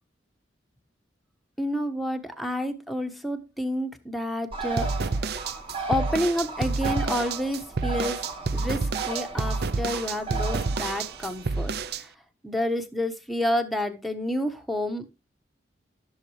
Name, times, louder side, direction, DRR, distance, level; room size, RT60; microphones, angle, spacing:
voice 1, 1.6-4.9 5.9-8.3 8.5-12.1 12.4-15.1, left 1 dB, ahead, 4 dB, 1.2 m, -29 dB
Bird, 4.5-11.9, right 4 dB, 30° right, 2.6 m, -36 dB
sound 1, 4.8-12.0, right 3 dB, 60° right, 0.5 m, -29 dB
14.5 x 7.3 x 3.2 m, 0.23 s
head